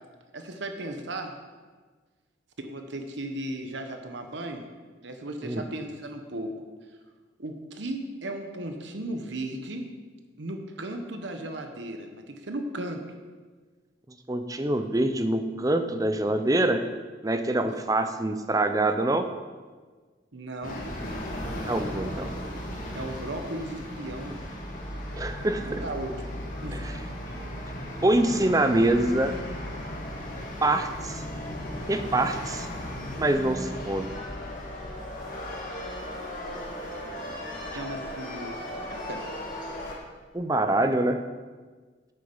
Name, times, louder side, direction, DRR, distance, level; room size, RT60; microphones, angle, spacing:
voice 1, 0.3-1.4 2.6-4.7 5.0-6.5 7.4-9.9 10.4-13.0 17.6-17.8 20.3-20.8 22.9-24.4 25.6-26.2 26.6-26.8 37.7-39.2, right 1 dB, 75° right, 5 dB, 1.0 m, -36 dB
voice 2, 14.3-16.8 17.2-19.3 21.7-22.3 25.1-25.8 26.7-27.0 28.0-29.4 30.6-31.2 31.9-32.7 33.2-34.1 40.3-41.2, right 1 dB, 20° right, 9 dB, 0.5 m, -25 dB
sound 1, 20.6-40.0, left 1 dB, 45° left, 1.9 m, -36 dB
8.7 x 8.1 x 5.5 m, 1.4 s
head